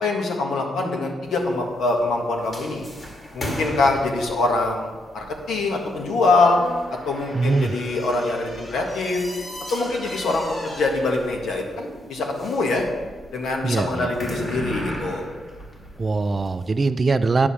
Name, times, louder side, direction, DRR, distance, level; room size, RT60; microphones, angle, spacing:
voice 1, 0.0-2.9 3.3-6.6 7.1-9.2 9.7-12.8 13.3-15.3, left 3 dB, 85° left, 1 dB, 1.6 m, -24 dB
sound 1, 1.2-16.6, equal, 30° left, 1.9 m, -36 dB
voice 2, 7.3-7.7 13.6-14.1 16.0-17.5, right 3 dB, 30° right, 10 dB, 0.4 m, -22 dB
9.7 x 4.9 x 7.1 m, 1.4 s
cardioid pair, 125°, 0 cm